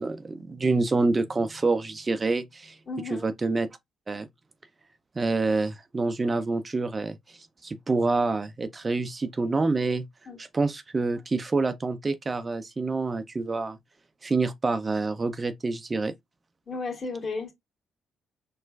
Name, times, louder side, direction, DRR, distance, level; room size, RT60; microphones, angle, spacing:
voice 1, 0.0-2.8 3.1-3.7 4.1-4.3 5.2-10.1 10.4-13.8 14.2-16.1, right 3 dB, 30° right, 0.4 m, -27 dB
voice 2, 2.9-3.3 10.3-10.4 16.7-17.5, left 3 dB, 45° left, 1.5 m, -33 dB
4.4 x 2.3 x 2.2 m
cardioid pair, 90°, 0 cm